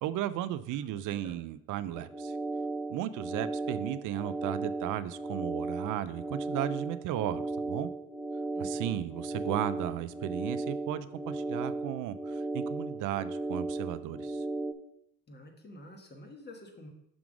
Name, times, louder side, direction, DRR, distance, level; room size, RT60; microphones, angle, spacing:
voice 1, 0.0-2.4 2.9-7.9 8.6-14.4, right 12 dB, 90° right, 14 dB, 0.5 m, -35 dB
voice 2, 0.7-1.4 8.5-9.0 15.3-16.9, left 1 dB, 35° left, 3 dB, 1.4 m, -49 dB
sound 1, 1.9-14.7, right 2 dB, ahead, 0.6 m, -36 dB
6.0 x 3.7 x 6.0 m, 0.75 s
cardioid pair, 90°, 30 cm